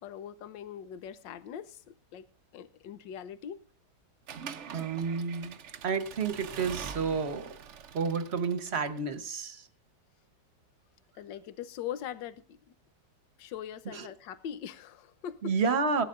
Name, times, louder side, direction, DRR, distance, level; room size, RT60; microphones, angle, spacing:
voice 1, 0.0-2.3 2.5-3.6 11.2-12.4 13.4-15.5, left 9 dB, 80° left, 13 dB, 1.5 m, -41 dB
Accelerating revving vroom / Mechanisms, 4.3-9.2, right 7 dB, 60° right, 0.8 m, -44 dB
voice 2, 4.7-5.6 5.8-7.5 7.9-9.7 13.9-14.1 15.4-16.0, right 5 dB, 40° right, 10 dB, 1.1 m, -30 dB
18.0 x 11.5 x 2.5 m, 0.38 s
omnidirectional pair, 2.0 m